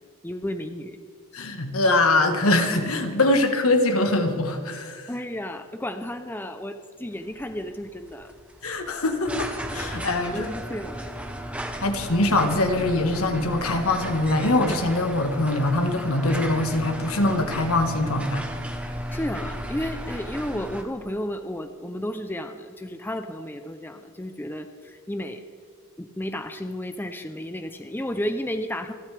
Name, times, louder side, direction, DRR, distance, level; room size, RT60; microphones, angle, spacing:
voice 1, 0.2-1.0 5.1-8.3 10.3-11.1 19.1-25.4 26.0-28.9, left 1 dB, 10° left, 8 dB, 0.5 m, -32 dB
voice 2, 1.3-5.1 8.6-10.5 11.8-18.4, left 2 dB, 75° left, 6 dB, 1.6 m, -23 dB
sound 1, 7.2-20.8, equal, 5° right, 1.0 m, -35 dB
28.0 x 12.0 x 3.4 m, 2.2 s
head